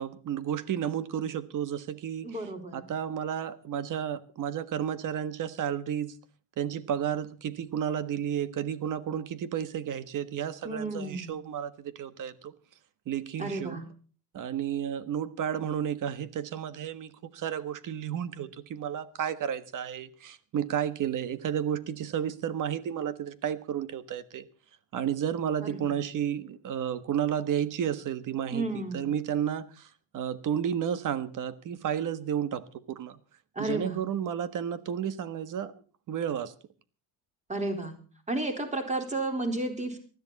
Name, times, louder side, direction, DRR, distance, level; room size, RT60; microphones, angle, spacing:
voice 1, 0.0-2.4 2.7-6.1 6.6-12.5 13.1-13.8 14.3-24.4 24.9-29.9 30.1-33.2 33.6-35.7 36.1-36.5, right 9 dB, 45° right, 1.5 m, -32 dB
voice 2, 2.2-2.8 10.6-11.3 13.4-13.8 25.6-25.9 28.5-29.1 33.6-34.0 37.5-37.9 38.3-40.0, right 2 dB, 15° right, 4.2 m, -32 dB
19.5 x 13.5 x 4.1 m
cardioid pair, 130°, 42 cm